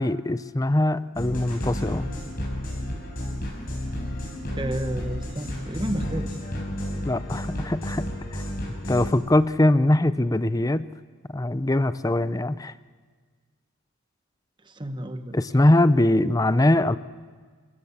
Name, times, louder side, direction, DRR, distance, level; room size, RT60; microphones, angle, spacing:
voice 1, 0.0-2.1 7.0-8.4 8.9-10.8 11.3-12.7 15.3-17.0, left 1 dB, 15° left, 14 dB, 0.5 m, -22 dB
sound 1, 1.2-9.1, left 1 dB, 45° left, 6.4 m, -32 dB
voice 2, 4.6-6.4 14.6-15.4, right 1 dB, 20° right, 8 dB, 1.2 m, -31 dB
29.5 x 16.5 x 7.2 m, 1.5 s
head